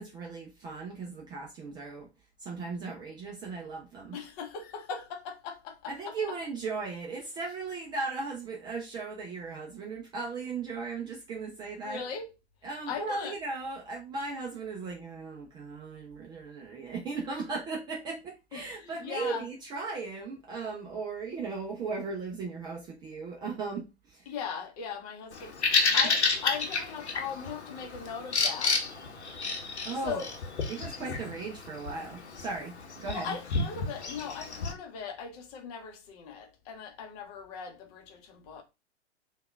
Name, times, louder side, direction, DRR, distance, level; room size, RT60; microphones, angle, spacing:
voice 1, 0.0-2.1 2.4-4.2 5.9-12.0 12.6-24.4 26.0-26.1 29.9-30.3 30.7-33.4, right 4 dB, 15° right, 0.4 m, -37 dB
voice 2, 4.1-6.2 11.8-12.3 12.9-13.4 18.5-19.5 24.3-28.9 30.0-30.3 33.1-38.6, left 7 dB, 35° left, 0.8 m, -39 dB
Bird vocalization bird call bird song, 25.3-34.7, left 4 dB, 75° left, 0.9 m, -31 dB
3.5 x 2.4 x 3.2 m
figure-of-eight pair, 110°, 34 cm